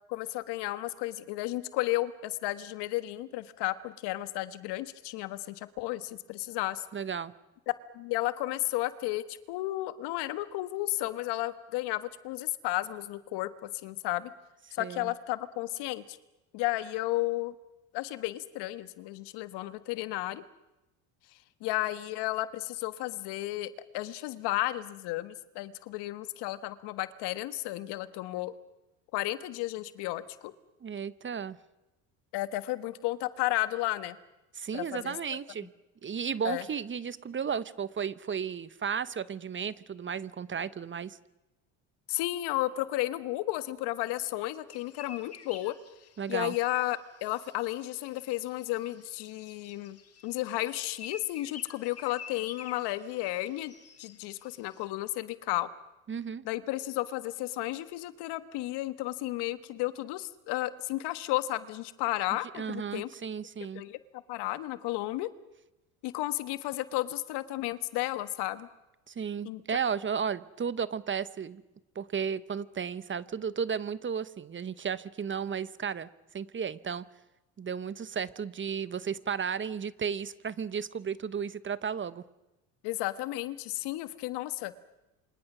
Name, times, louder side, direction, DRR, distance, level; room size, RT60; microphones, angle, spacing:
voice 1, 0.1-6.8 7.9-14.3 14.7-16.2 16.5-17.5 17.9-20.4 21.6-28.5 29.1-30.5 32.3-34.2 34.7-35.2 36.4-36.6 42.1-45.7 46.3-50.0 50.2-53.7 54.0-55.7 56.4-63.1 63.7-64.0 64.3-65.3 66.0-68.7 69.4-69.6 82.8-84.8, left 17 dB, 70° left, 13 dB, 1.4 m, -33 dB
voice 2, 6.9-7.3 14.8-15.1 30.8-31.6 34.5-35.7 36.0-41.2 46.2-46.5 56.1-56.4 62.5-63.8 69.1-71.6 71.9-77.0 77.6-82.2, right 7 dB, 30° right, 16 dB, 1.0 m, -34 dB
sound 1, 44.7-54.9, left 6 dB, 35° left, 2.2 m, -51 dB
28.0 x 25.0 x 6.2 m, 0.98 s
supercardioid pair, 85°, 42 cm